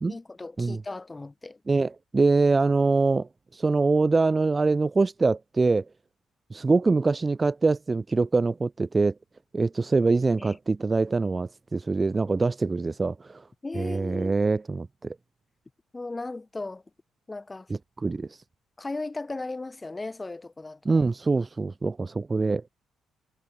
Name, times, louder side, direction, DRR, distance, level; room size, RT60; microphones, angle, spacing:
voice 1, 0.1-1.6 10.4-10.6 13.6-14.4 15.9-16.8 17.3-17.7 18.8-21.0, left 3 dB, 20° left, 6.2 m, -36 dB
voice 2, 1.7-3.3 3.5-5.8 6.5-9.1 9.5-13.4 13.7-14.9 18.0-18.3 20.9-22.7, right 3 dB, 25° right, 0.4 m, -24 dB
cardioid pair, 90°, 0 cm